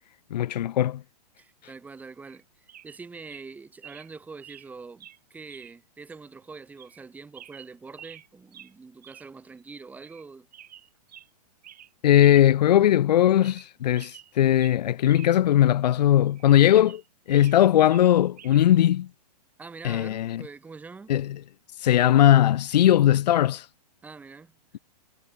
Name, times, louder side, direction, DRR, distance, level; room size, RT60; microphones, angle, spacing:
voice 1, 0.3-1.0 12.0-17.0 17.3-19.1 19.8-20.4 21.1-21.3 21.8-23.7, left 12 dB, 80° left, 0.6 m, -19 dB
voice 2, 1.4-10.5 19.6-21.1 24.0-24.5, right 4 dB, 5° right, 1.4 m, -44 dB
sound 1, 2.3-2.4 2.7-3.0 3.3-3.5 3.8-4.1 4.4-4.7 5.0-5.2 5.5-5.8 6.1-6.2 6.8-7.0 7.3-8.3 8.5-8.7 9.0-9.3 9.6-9.7 10.0-10.2 10.5-11.3 11.6-11.9 12.2-12.4 12.8-12.9 13.3-13.7 13.9-15.3 15.6-15.7 16.3-17.6 17.9-18.6 19.8-20.1, right 10 dB, 75° right, 2.2 m, -49 dB
hypercardioid pair, 145°, 21 cm